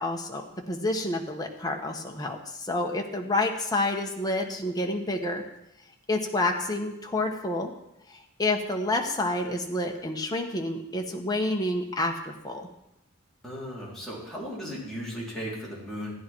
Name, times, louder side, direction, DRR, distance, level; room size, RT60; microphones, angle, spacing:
voice 1, 0.0-5.4 6.1-7.7 8.1-12.7, left 2 dB, 20° left, 1 dB, 1.3 m, -29 dB
voice 2, 13.4-16.1, equal, ahead, -7 dB, 4.0 m, -36 dB
14.5 x 10.0 x 4.6 m, 0.85 s
head